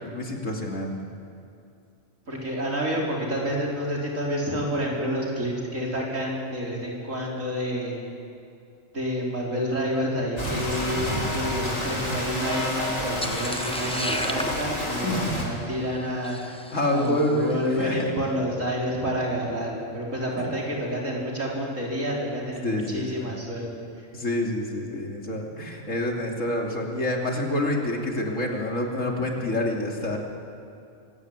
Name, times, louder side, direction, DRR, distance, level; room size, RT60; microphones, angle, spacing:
voice 1, 0.0-0.9 15.0-15.5 16.4-18.1 20.4-20.5 22.6-23.2 24.1-30.2, left 1 dB, 80° left, 1 dB, 3.4 m, -27 dB
voice 2, 2.3-8.0 8.9-11.1 11.3-16.4 16.9-23.8, equal, 90° right, -2 dB, 5.0 m, -29 dB
Rain, 10.4-15.5, left 1 dB, 30° left, 3.7 m, -29 dB
sound 1, 13.2-17.5, equal, 5° left, 1.0 m, -35 dB
24.5 x 17.0 x 9.7 m, 2.5 s
omnidirectional pair, 1.3 m